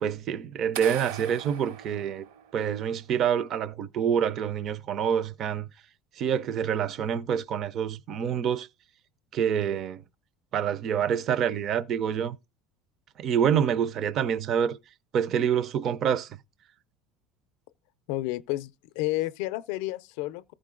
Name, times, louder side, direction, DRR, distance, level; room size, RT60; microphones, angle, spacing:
voice 1, 0.0-2.2 2.5-5.7 6.2-8.7 9.3-10.0 10.5-12.4 13.2-14.8 15.1-16.3, right 8 dB, 30° right, 0.4 m, -27 dB
sound 1, 0.7-2.8, right 9 dB, 60° right, 0.7 m, -40 dB
voice 2, 18.1-18.7 19.0-20.5, left 17 dB, 60° left, 0.5 m, -30 dB
14.0 x 4.9 x 3.7 m
cardioid pair, 180°, 0 cm